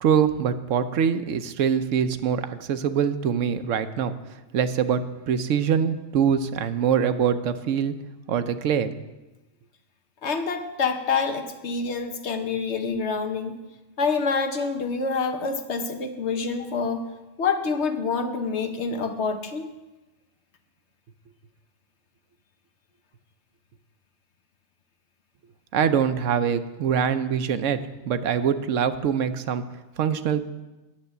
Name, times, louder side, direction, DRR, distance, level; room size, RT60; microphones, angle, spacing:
voice 1, 0.0-4.1 4.5-8.0 8.3-9.0 25.7-29.6 30.0-30.5, right 7 dB, 80° right, 10 dB, 1.1 m, -24 dB
voice 2, 10.2-13.6 14.0-17.1 17.4-19.6, left 5 dB, 65° left, 7 dB, 1.2 m, -27 dB
10.0 x 6.7 x 8.1 m, 1.1 s
omnidirectional pair, 1.3 m